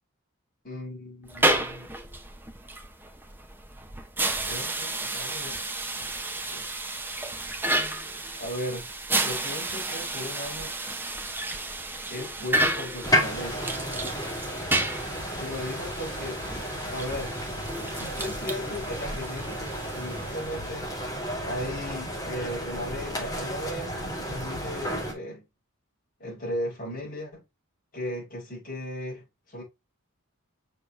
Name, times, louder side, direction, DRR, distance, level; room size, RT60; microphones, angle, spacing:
voice 1, 0.6-1.9 4.4-5.6 5.9-6.1 6.5-6.8 8.4-8.9 9.2-10.8 12.1-13.7 15.4-16.4 16.9-17.3 17.9-20.9 21.4-25.4 26.2-27.4 27.9-29.6, left 1 dB, 40° left, 5.1 m, -36 dB
sound 1, 1.2-20.9, right 2 dB, 10° right, 1.0 m, -31 dB
sound 2, 13.0-25.1, equal, 15° left, 3.6 m, -32 dB
6.8 x 6.1 x 2.7 m
head